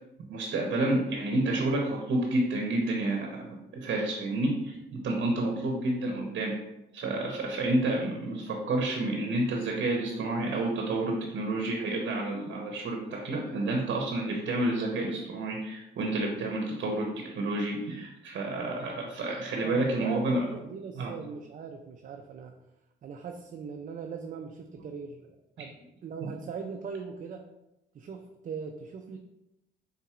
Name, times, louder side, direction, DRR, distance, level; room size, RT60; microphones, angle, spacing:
voice 1, 0.3-6.5 6.9-20.4 21.0-21.1 26.2-26.3, right 2 dB, 65° right, 0 dB, 0.7 m, -29 dB
voice 2, 19.6-22.5 23.0-25.7 26.0-27.5 27.9-29.2, right 5 dB, 40° right, 3 dB, 0.4 m, -40 dB
4.2 x 3.8 x 2.4 m, 0.92 s
cardioid pair, 90°, 20 cm